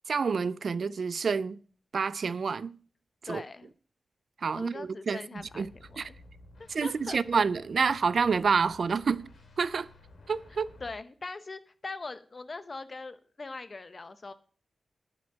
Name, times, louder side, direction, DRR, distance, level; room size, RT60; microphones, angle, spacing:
voice 1, 0.1-1.6 1.9-2.8 3.3-3.4 4.4-5.2 5.6-5.7 6.0-6.1 6.7-9.3 9.6-9.9 10.3-10.7, right 5 dB, 60° right, 0.4 m, -28 dB
voice 2, 3.2-3.7 4.5-6.1 6.8-7.4 10.5-14.3, left 3 dB, 35° left, 0.8 m, -42 dB
sound 1, 5.4-11.0, left 2 dB, 75° left, 3.0 m, -54 dB
10.5 x 5.1 x 7.4 m
wide cardioid pair, 130°, 0 cm